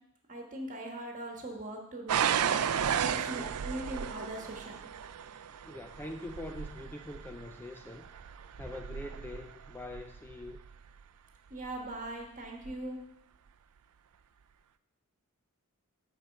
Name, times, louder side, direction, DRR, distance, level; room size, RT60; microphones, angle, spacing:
voice 1, 0.3-2.3 3.0-4.9 11.5-13.0, right 1 dB, 35° right, 2 dB, 1.6 m, -40 dB
sound 1, 2.1-10.9 11.6-12.1 12.6-12.8, right 8 dB, 80° right, 0.4 m, -34 dB
voice 2, 5.6-8.1 8.6-10.6, left 1 dB, 10° left, 5 dB, 0.4 m, -44 dB
9.3 x 4.4 x 6.5 m, 0.81 s
head